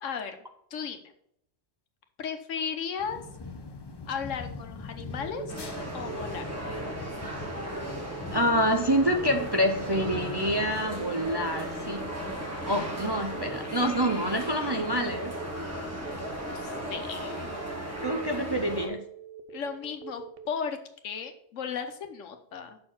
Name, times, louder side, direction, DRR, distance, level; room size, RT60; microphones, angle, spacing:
voice 1, 0.0-0.4 0.7-1.0 2.2-3.2 4.1-5.5 5.9-6.5 16.5-17.6 19.5-20.8 21.0-22.8, left 6 dB, 85° left, 7 dB, 1.3 m, -35 dB
sound 1, 3.0-10.8, left 3 dB, 40° left, 0.3 m, -42 dB
Telephone, 5.2-20.5, right 7 dB, 55° right, 0.8 m, -44 dB
sound 2, 5.5-18.9, equal, 10° right, 1.6 m, -36 dB
voice 2, 8.3-12.1 12.6-15.3 18.0-19.0, equal, 35° right, 4 dB, 0.4 m, -27 dB
6.4 x 4.5 x 5.9 m, 0.71 s
omnidirectional pair, 1.3 m